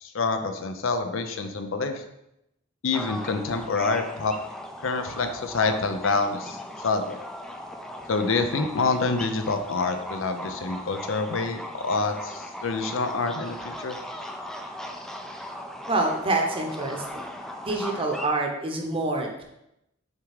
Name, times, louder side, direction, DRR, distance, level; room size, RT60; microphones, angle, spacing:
voice 1, 0.0-2.0 2.8-4.4 4.8-7.2 8.1-14.0, left 3 dB, 70° left, 7 dB, 0.6 m, -27 dB
sound 1, 2.9-18.3, equal, ahead, 0.4 m, -38 dB
voice 2, 15.9-17.2 17.6-19.4, right 2 dB, 25° right, 2 dB, 0.9 m, -26 dB
6.5 x 3.6 x 4.8 m, 0.84 s
head